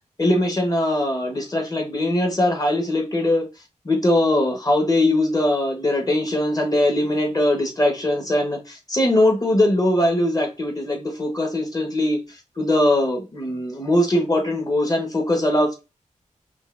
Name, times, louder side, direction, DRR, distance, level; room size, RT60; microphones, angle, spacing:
voice 1, 0.2-3.5 3.8-12.2 12.6-15.8, left 1 dB, 30° left, 1.2 m, -21 dB
5.3 x 2.5 x 2.5 m
wide cardioid pair, 90°, 13 cm